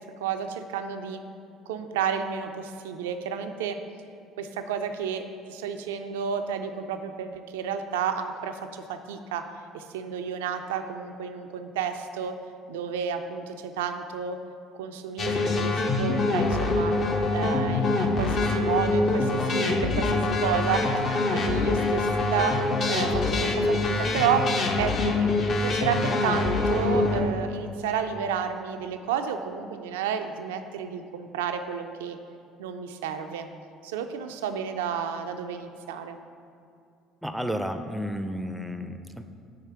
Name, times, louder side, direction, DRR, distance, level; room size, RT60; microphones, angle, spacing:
voice 1, 0.2-1.2 1.7-3.8 4.4-9.4 9.7-12.4 12.7-14.4 14.7-16.9 17.3-20.9 21.3-22.6 22.9-24.5 24.8-32.2 32.6-33.5 33.8-36.2, right 7 dB, 75° right, 7 dB, 0.3 m, -31 dB
sound 1, 15.2-27.2, left 2 dB, 45° left, 0.6 m, -25 dB
voice 2, 37.2-39.2, equal, 5° right, 8 dB, 0.5 m, -32 dB
4.9 x 4.3 x 5.7 m, 2.5 s
figure-of-eight pair, 55°, 0 cm